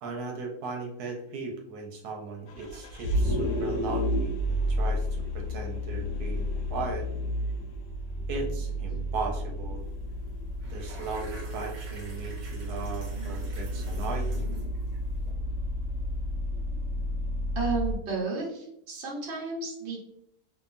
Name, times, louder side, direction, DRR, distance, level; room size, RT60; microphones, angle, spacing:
voice 1, 0.0-7.1 8.3-9.9 10.6-14.3, right 4 dB, 85° right, 1 dB, 1.1 m, -37 dB
Vehicle, 2.5-17.9, equal, 85° left, 1.1 m, -31 dB
sound 1, 9.8-10.0 10.3-15.3, right 2 dB, 70° right, 0.4 m, -47 dB
voice 2, 17.5-20.0, right 3 dB, 50° right, -3 dB, 1.1 m, -32 dB
2.8 x 2.4 x 2.4 m, 0.74 s
omnidirectional pair, 1.6 m